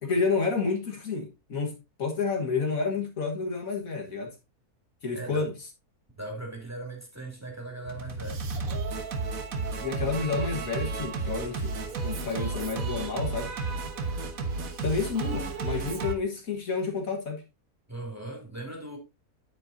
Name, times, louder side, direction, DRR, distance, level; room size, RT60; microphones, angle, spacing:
voice 1, 0.0-4.3 5.0-5.5 9.8-11.8 12.0-13.5 14.8-17.4, left 4 dB, 60° left, 2.0 m, -30 dB
voice 2, 5.1-5.5 6.2-8.4 17.9-19.0, right 2 dB, 10° right, 2.7 m, -38 dB
Singing, 7.8-16.1, right 3 dB, 65° right, 1.6 m, -32 dB
9.1 x 8.8 x 2.7 m
omnidirectional pair, 1.6 m